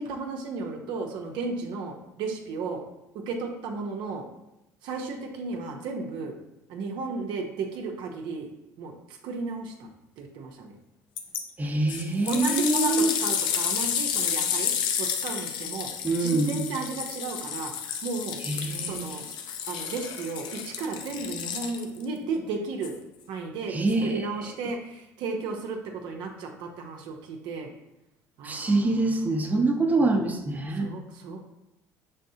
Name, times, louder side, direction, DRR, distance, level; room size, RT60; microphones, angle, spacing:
voice 1, 0.0-2.8 3.3-4.3 4.8-6.4 6.7-8.5 8.8-9.9 10.2-10.8 12.3-14.7 15.0-15.9 16.2-17.7 18.0-18.4 18.8-19.3 19.7-22.9 23.3-23.8 24.0-27.7 28.4-29.2 29.8-30.2 30.7-31.5, right 4 dB, 70° right, 2 dB, 0.6 m, -34 dB
sound 1, 11.2-11.4 11.9-22.0 22.8-22.9, left 8 dB, 70° left, 0.5 m, -30 dB
voice 2, 11.6-13.1 16.0-16.6 18.4-19.0 23.7-24.3 28.4-30.9, right 2 dB, 20° right, 1 dB, 0.7 m, -25 dB
5.3 x 3.5 x 2.7 m, 0.90 s
supercardioid pair, 75°, 8 cm